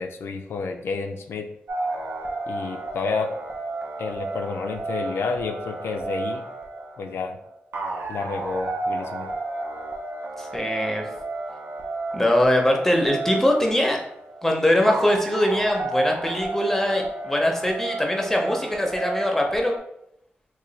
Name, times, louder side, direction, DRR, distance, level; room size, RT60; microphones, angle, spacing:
voice 1, 0.0-1.5 2.5-3.3 4.0-6.4 7.0-7.4 8.1-9.3, left 4 dB, 85° left, 5 dB, 0.3 m, -30 dB
sound 1, 1.7-19.8, right 2 dB, 75° right, 0.6 m, -32 dB
voice 2, 10.4-11.1 12.1-14.0 14.4-19.8, left 1 dB, 5° left, 1 dB, 0.6 m, -22 dB
3.0 x 2.2 x 3.9 m, 0.76 s
wide cardioid pair, 110°, 4 cm